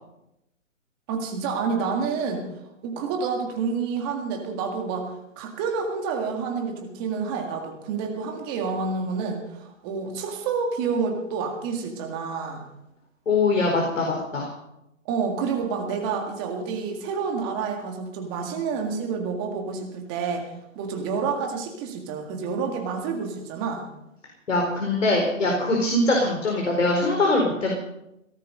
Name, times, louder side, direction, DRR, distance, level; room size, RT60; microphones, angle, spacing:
voice 1, 1.1-2.4 2.8-5.1 5.4-12.6 15.1-23.8, right 5 dB, 15° right, 3 dB, 1.9 m, -29 dB
voice 2, 13.3-14.5 24.5-27.7, left 2 dB, 65° left, 0 dB, 4.5 m, -22 dB
17.5 x 13.5 x 5.4 m, 0.86 s
hypercardioid pair, 160°, 39 cm